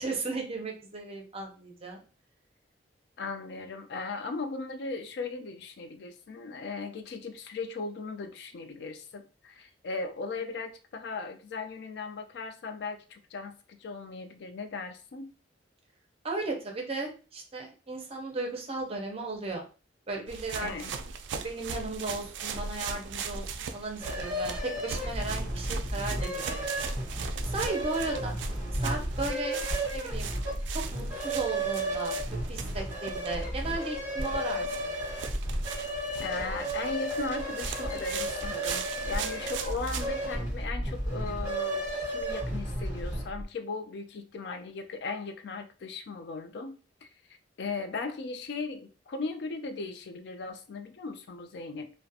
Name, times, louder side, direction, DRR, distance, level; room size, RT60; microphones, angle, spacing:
voice 1, 0.0-2.0 16.2-19.6 20.1-20.7 21.4-26.9 27.2-28.3 28.7-29.6 29.9-30.3 30.7-35.0, right 2 dB, 35° right, 1 dB, 0.6 m, -35 dB
voice 2, 3.2-15.3 20.6-20.9 36.2-47.1 47.6-51.9, left 3 dB, 65° left, 7 dB, 0.4 m, -37 dB
sound 1, 20.3-40.1, right 6 dB, 75° right, 0.3 m, -39 dB
sound 2, 24.0-43.4, right 1 dB, 15° right, 1.3 m, -33 dB
2.4 x 2.1 x 2.6 m, 0.35 s
head